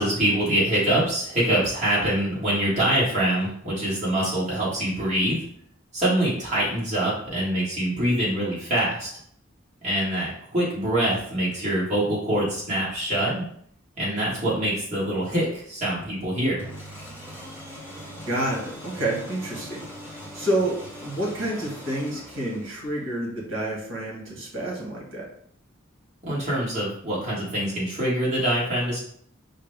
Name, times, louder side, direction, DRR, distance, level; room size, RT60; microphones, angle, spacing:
voice 1, 0.0-5.4 5.9-9.1 9.8-13.4 14.0-16.7 26.2-29.0, right 1 dB, 35° right, -7 dB, 1.6 m, -24 dB
sound 1, 16.6-23.1, equal, 10° right, 0.7 m, -41 dB
voice 2, 18.3-19.9 20.3-25.2, right 1 dB, 70° right, -3 dB, 1.5 m, -29 dB
4.7 x 2.2 x 3.3 m, 0.65 s
head